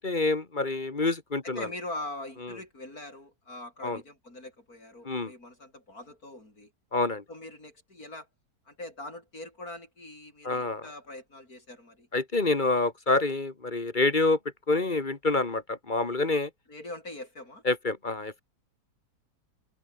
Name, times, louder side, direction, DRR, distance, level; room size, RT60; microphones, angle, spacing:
voice 1, 0.0-1.7 3.8-4.0 5.0-5.3 6.9-7.2 10.4-10.9 12.1-14.4 14.7-16.5 17.6-18.4, left 3 dB, 30° left, 1.7 m, -27 dB
voice 2, 1.4-6.7 7.3-8.3 8.7-12.1 16.7-17.6, left 1 dB, 65° left, 8.1 m, -42 dB
omnidirectional pair, 1.7 m